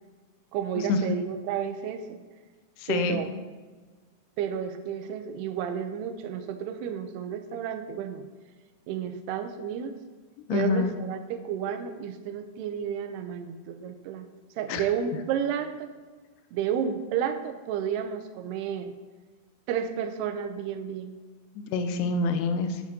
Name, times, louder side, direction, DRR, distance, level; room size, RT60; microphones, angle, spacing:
voice 1, 0.5-2.2 2.9-3.3 4.4-8.2 8.9-10.0 10.5-14.3 14.6-15.9 16.5-18.9 19.7-21.2, right 8 dB, 85° right, 8 dB, 2.6 m, -31 dB
voice 2, 2.8-3.2 10.5-11.0 14.7-14.8 21.6-22.8, left 4 dB, 90° left, 8 dB, 2.7 m, -27 dB
7.8 x 7.3 x 2.7 m, 1.4 s
omnidirectional pair, 4.7 m